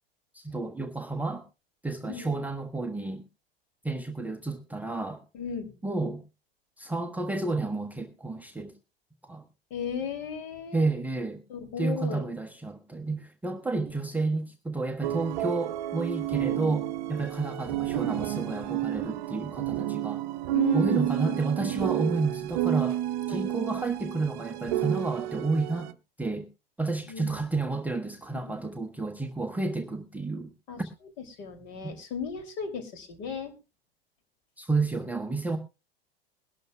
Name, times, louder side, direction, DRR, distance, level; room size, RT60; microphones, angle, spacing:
voice 1, 0.3-1.4 1.8-3.2 3.8-5.2 5.8-6.2 6.8-8.7 9.2-9.4 10.7-11.4 11.8-20.2 20.7-23.0 23.3-25.9 26.2-26.5 26.8-30.5 34.6-35.6, right 3 dB, 5° right, 4 dB, 0.7 m, -31 dB
voice 2, 2.1-2.4 5.3-5.7 9.7-10.9 11.5-12.2 20.5-21.4 23.3-23.5 27.1-27.5 28.5-28.6 30.7-30.8 31.2-33.5, left 6 dB, 50° left, 7 dB, 2.7 m, -35 dB
sound 1, 15.0-25.9, right 14 dB, 50° right, 0.7 m, -30 dB
21.5 x 12.0 x 2.2 m, 0.27 s
figure-of-eight pair, 90°, 30 cm